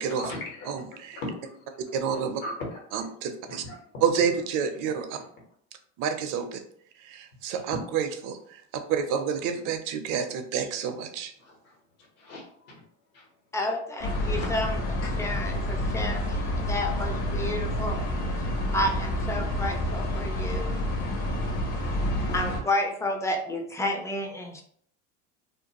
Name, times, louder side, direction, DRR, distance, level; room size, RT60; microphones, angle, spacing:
voice 1, 0.2-0.7 1.1-1.8 2.1-2.8 3.5-3.8 7.7-7.8 10.5-10.7 11.4-11.8 12.2-12.7 13.1-13.3 14.2-14.5 15.1-15.2, left 2 dB, 80° left, -1 dB, 1.3 m, -38 dB
voice 2, 0.7-1.2 1.9-2.4 2.9-3.6 4.0-5.1 6.0-6.6 7.0-8.6 8.9-11.3, right 7 dB, 55° right, 7 dB, 0.5 m, -29 dB
voice 3, 13.5-14.8 15.2-18.0 18.7-20.8 22.3-24.6, left 1 dB, 10° left, 3 dB, 0.3 m, -30 dB
sound 1, 14.0-22.6, left 1 dB, 60° left, 0.9 m, -29 dB
2.6 x 2.2 x 2.8 m, 0.63 s
supercardioid pair, 95°, 38 cm